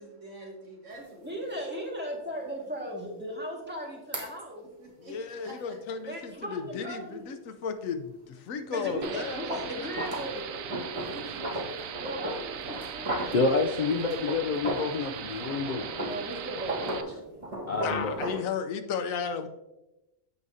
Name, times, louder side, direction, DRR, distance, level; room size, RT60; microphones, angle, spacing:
voice 1, 0.0-1.6 4.8-5.8 11.0-11.9 13.0-13.6, right 1 dB, 70° right, -2 dB, 2.5 m, -47 dB
sound 1, 0.9-1.0 1.5-1.6 4.1-4.3 8.8-15.0 15.3-18.5, right 1 dB, 25° right, 1.5 m, -36 dB
voice 2, 1.2-4.7 6.0-7.2 8.4-10.5 11.9-13.6 16.0-17.4, equal, 10° right, -2 dB, 1.8 m, -38 dB
voice 3, 5.0-9.9 17.7-19.5, left 6 dB, 85° left, 8 dB, 1.1 m, -34 dB
sound 2, 9.0-17.0, right 8 dB, 85° right, 1.0 m, -39 dB
voice 4, 13.3-15.9 17.7-18.2, left 3 dB, 50° left, 3 dB, 0.6 m, -28 dB
14.5 x 4.9 x 2.7 m, 0.96 s
omnidirectional pair, 1.4 m